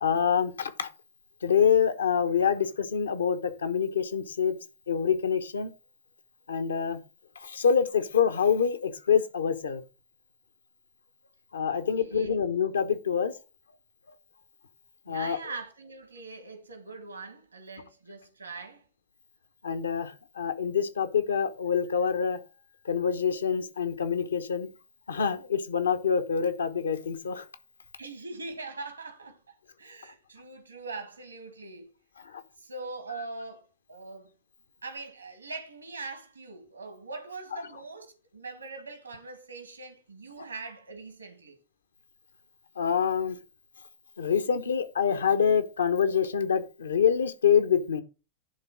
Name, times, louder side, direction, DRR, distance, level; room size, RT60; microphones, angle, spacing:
voice 1, 0.0-0.9 1.4-4.6 4.9-5.7 6.5-7.0 7.4-9.8 11.5-13.3 15.1-15.4 19.6-22.4 22.8-24.7 25.1-27.4 32.2-32.4 37.5-37.6 42.8-43.4 44.2-48.0, left 7 dB, 70° left, 1.0 m, -26 dB
voice 2, 12.0-12.5 15.1-18.8 28.0-31.9 32.6-34.3 34.8-41.6, right 3 dB, 80° right, 1.9 m, -42 dB
11.0 x 3.7 x 6.1 m
figure-of-eight pair, 90°, 0 cm